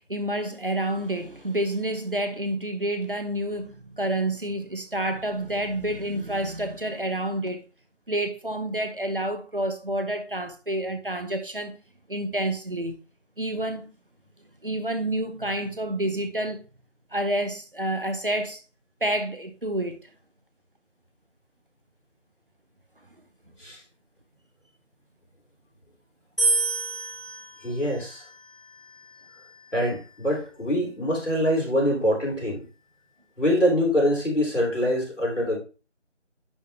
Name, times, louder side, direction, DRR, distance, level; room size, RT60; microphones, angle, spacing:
voice 1, 0.0-7.6 8.1-11.8 12.1-13.0 13.4-13.9 14.6-16.6 17.1-18.6 19.0-20.0, right 1 dB, 50° right, 0.8 m, -29 dB
sound 1, 26.4-29.6, right 3 dB, ahead, 0.7 m, -29 dB
voice 2, 27.6-28.2 29.7-32.6 33.4-35.6, equal, 90° left, 3.2 m, -24 dB
9.9 x 3.4 x 2.9 m
figure-of-eight pair, 170°, 36 cm